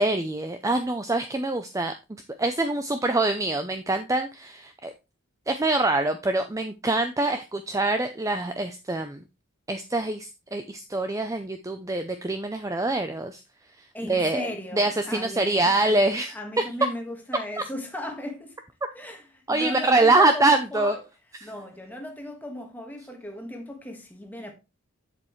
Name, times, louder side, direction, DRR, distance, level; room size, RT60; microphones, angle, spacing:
voice 1, 0.0-1.9 2.4-4.9 5.5-9.2 9.7-13.4 13.8-16.4 17.6-17.7 19.5-21.0 21.4-21.5, right 2 dB, 15° right, 0.4 m, -24 dB
voice 2, 13.9-18.6 18.9-21.0 21.4-24.5, left 1 dB, 10° left, 1.5 m, -37 dB
7.7 x 7.4 x 3.1 m
head